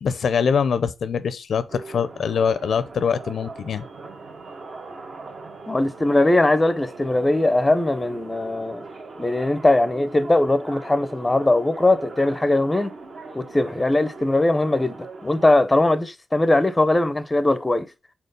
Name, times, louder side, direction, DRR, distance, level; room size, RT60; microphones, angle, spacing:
voice 1, 0.0-3.8, left 6 dB, 70° left, 0.5 m, -23 dB
sound 1, 1.7-15.5, right 3 dB, 55° right, 1.4 m, -40 dB
voice 2, 5.7-8.8 9.2-12.9 13.3-15.0 15.2-17.9, left 2 dB, 15° left, 0.6 m, -20 dB
4.4 x 4.3 x 5.1 m
cardioid pair, 90°, 0 cm